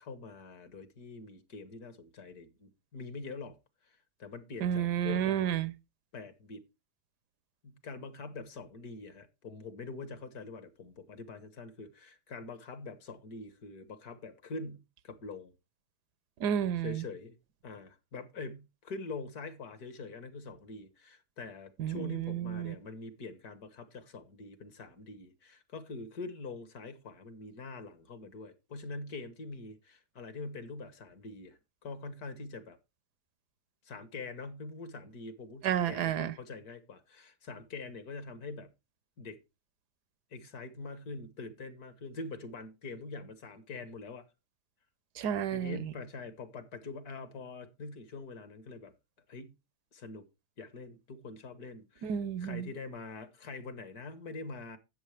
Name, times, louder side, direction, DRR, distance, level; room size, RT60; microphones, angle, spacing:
voice 1, 0.0-3.6 3.8-5.4 6.1-6.7 7.6-15.5 16.8-17.4 17.6-32.8 33.9-38.7 39.2-39.4 40.3-44.3 45.5-48.9 49.3-49.6 49.9-50.3 50.6-54.8, left 3 dB, 70° left, 1.9 m, -44 dB
voice 2, 4.6-5.7 16.4-17.0 21.8-22.7 35.6-36.3 45.2-45.9 52.0-52.7, right 9 dB, 85° right, 1.4 m, -31 dB
12.5 x 8.6 x 3.3 m
omnidirectional pair, 1.7 m